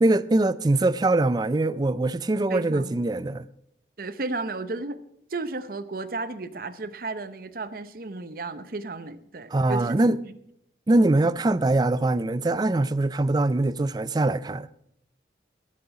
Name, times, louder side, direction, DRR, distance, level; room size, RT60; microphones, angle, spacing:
voice 1, 0.0-3.4 9.5-10.2 10.9-14.7, right 2 dB, 20° right, 0.3 m, -22 dB
voice 2, 2.5-3.0 4.0-5.0 5.3-10.3, right 3 dB, 50° right, 0.7 m, -34 dB
14.0 x 7.5 x 5.8 m
head